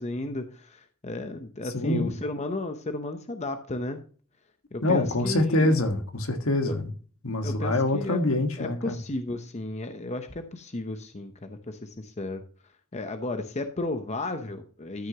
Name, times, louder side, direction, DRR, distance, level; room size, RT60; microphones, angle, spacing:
voice 1, 0.0-4.0 4.7-5.8 6.7-6.8 7.4-8.2 8.6-12.4 12.9-15.1, left 2 dB, 30° left, 0.8 m, -34 dB
voice 2, 1.6-2.2 4.8-6.9 7.2-9.0, left 2 dB, 70° left, 1.5 m, -25 dB
13.0 x 6.2 x 2.8 m
head